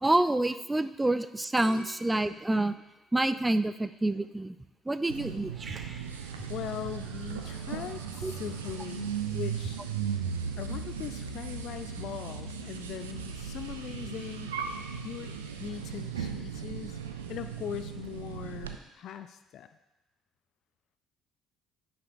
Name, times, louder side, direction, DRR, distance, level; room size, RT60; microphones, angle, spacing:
voice 1, 0.0-2.7 3.1-4.6 4.9-5.8 8.2-8.3, right 2 dB, 15° right, 13 dB, 0.4 m, -27 dB
sound 1, 1.5-4.5 5.0-5.5, left 1 dB, 30° left, 2.6 m, -49 dB
sound 2, 5.1-18.7, right 7 dB, 85° right, 0.4 m, -37 dB
Growling, 5.5-10.1, right 3 dB, 40° right, 0.8 m, -52 dB
voice 2, 6.5-9.8 10.6-14.7 15.0-17.0 17.3-19.7, left 10 dB, 60° left, 10 dB, 0.3 m, -40 dB
9.9 x 5.8 x 2.6 m, 0.99 s
figure-of-eight pair, 50°, 0 cm